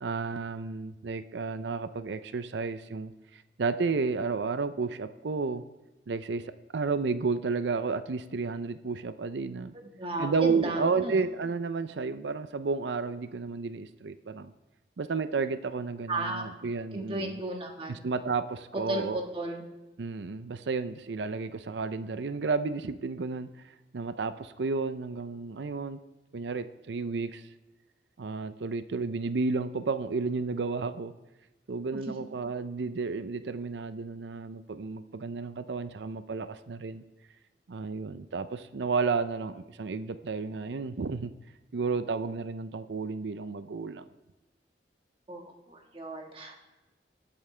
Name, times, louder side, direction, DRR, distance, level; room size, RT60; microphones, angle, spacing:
voice 1, 0.0-5.6 6.1-6.4 6.7-9.7 10.2-14.5 15.0-17.4 17.9-19.2 20.0-26.0 26.3-27.5 28.2-31.1 31.7-37.0 37.7-41.3 41.7-44.0, right 4 dB, 80° right, 12 dB, 0.5 m, -32 dB
voice 2, 10.0-11.1 16.1-16.5 16.9-18.0 18.9-19.6 45.3-46.6, right 1 dB, 30° right, 1 dB, 1.6 m, -34 dB
22.0 x 8.7 x 3.3 m, 1.1 s
head